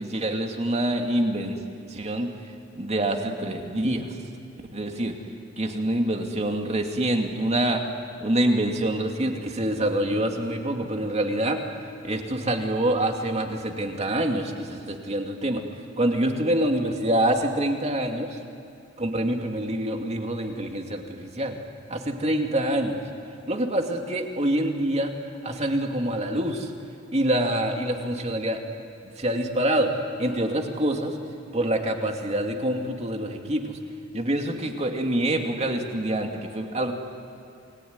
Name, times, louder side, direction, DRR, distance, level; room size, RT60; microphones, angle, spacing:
voice 1, 0.0-1.6 1.9-2.3 2.7-4.2 4.7-5.1 5.6-7.8 8.2-11.6 12.0-15.6 16.0-18.4 19.0-21.6 21.9-23.0 23.5-25.1 25.4-26.7 27.1-28.6 29.0-29.9 30.2-31.2 31.5-33.8 34.1-36.9, right 1 dB, 35° right, 3 dB, 2.5 m, -26 dB
29.0 x 21.5 x 9.6 m, 2.5 s
head